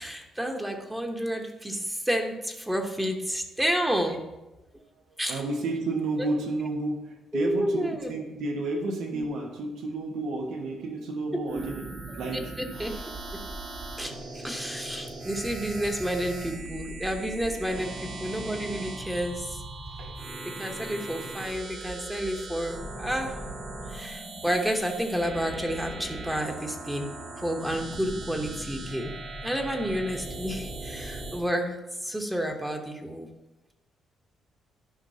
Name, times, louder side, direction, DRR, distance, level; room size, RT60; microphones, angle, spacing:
voice 1, 0.0-4.2 5.2-5.4 6.2-6.3 7.3-8.1 9.1-9.3 11.5-11.7 12.3-13.0 13.3-13.4 14.0-19.6 20.4-23.4 23.9-29.1 29.4-33.3, equal, 10° right, 3 dB, 1.0 m, -30 dB
voice 2, 5.3-12.5 17.7-17.8 20.0-20.1, right 2 dB, 85° right, 2 dB, 1.3 m, -31 dB
sound 1, 11.5-31.5, right 2 dB, 55° right, 1.8 m, -39 dB
11.5 x 5.1 x 2.8 m, 1.0 s
cardioid pair, 90°, 0 cm